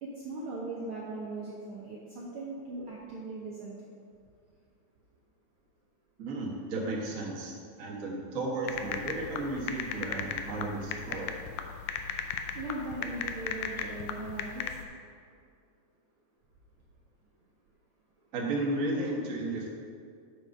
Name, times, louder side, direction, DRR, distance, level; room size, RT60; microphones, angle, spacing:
voice 1, 0.0-3.7 12.5-14.6, right 2 dB, 85° right, -5 dB, 1.1 m, -39 dB
voice 2, 6.2-11.4 18.3-19.7, right 2 dB, 65° right, -3 dB, 0.8 m, -34 dB
sound 1, 8.7-14.8, left 8 dB, 80° left, 1.8 m, -36 dB
7.7 x 5.0 x 5.2 m, 2.3 s
omnidirectional pair, 3.6 m